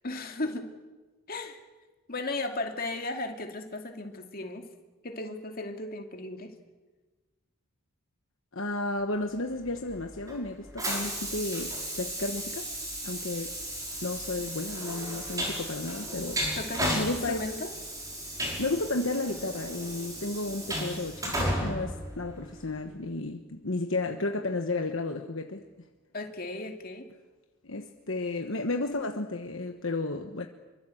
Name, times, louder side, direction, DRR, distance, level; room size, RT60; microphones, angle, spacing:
voice 1, 0.0-0.8 1.3-1.6 2.1-4.7 5.0-6.5 16.6-17.7 26.1-27.1, left 2 dB, 40° left, 4 dB, 2.5 m, -35 dB
voice 2, 8.5-12.7 13.0-13.5 14.0-16.4 16.9-17.5 18.6-25.6 27.6-30.5, left 2 dB, 60° left, 5 dB, 1.3 m, -33 dB
Train, 9.6-22.8, equal, 15° right, 5.4 m, -34 dB
26.0 x 24.0 x 7.9 m, 1.3 s
head